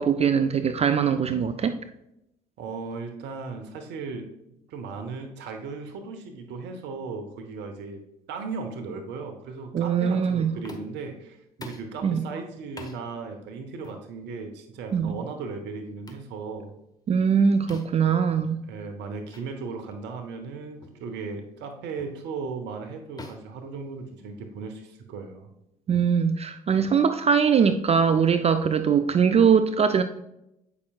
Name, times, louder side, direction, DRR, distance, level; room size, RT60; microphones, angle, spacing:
voice 1, 0.0-1.8 9.7-10.5 12.0-12.2 14.9-15.2 17.1-18.6 25.9-30.0, right 6 dB, 30° right, 0.4 m, -21 dB
voice 2, 2.6-4.3 4.7-8.0 8.3-16.7 18.3-25.5, right 4 dB, 60° right, 0.9 m, -37 dB
sound 1, 10.6-11.1 11.6-11.9 12.8-13.0 13.8-14.0 14.9-15.1 16.1-16.3 17.7-18.1 19.3-19.5 19.9-20.1 20.8-21.0 22.0-22.2 23.2-24.4, left 2 dB, 20° left, 1.1 m, -44 dB
8.4 x 5.8 x 2.3 m
hypercardioid pair, 55°, 20 cm